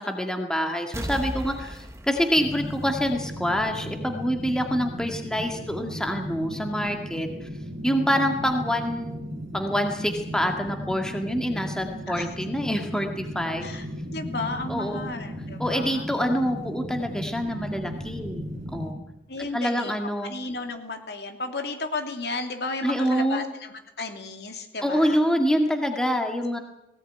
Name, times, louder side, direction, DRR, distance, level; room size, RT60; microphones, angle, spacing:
voice 1, 0.0-7.5 7.8-9.3 9.5-13.7 14.7-15.1 15.6-18.4 18.7-19.0 19.5-20.3 22.8-23.4 24.8-26.6, equal, 5° left, 4 dB, 2.1 m, -26 dB
sound 1, 0.9-3.5 3.9-4.0, right 1 dB, 15° right, 1.3 m, -36 dB
sound 2, 2.3-18.9, equal, 40° right, 3.7 m, -36 dB
voice 2, 13.6-16.0 19.3-25.2, left 3 dB, 65° left, 5 dB, 3.0 m, -34 dB
19.5 x 18.0 x 9.4 m, 0.91 s
head